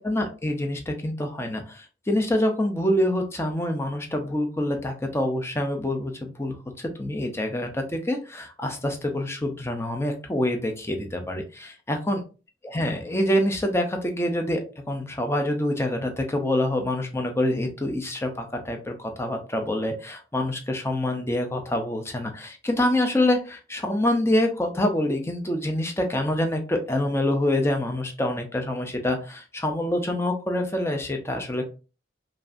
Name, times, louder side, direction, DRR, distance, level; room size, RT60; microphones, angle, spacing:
voice 1, 0.0-11.4 11.9-12.2 12.6-31.6, left 1 dB, 15° left, 4 dB, 0.7 m, -26 dB
5.2 x 2.6 x 2.6 m, 0.33 s
head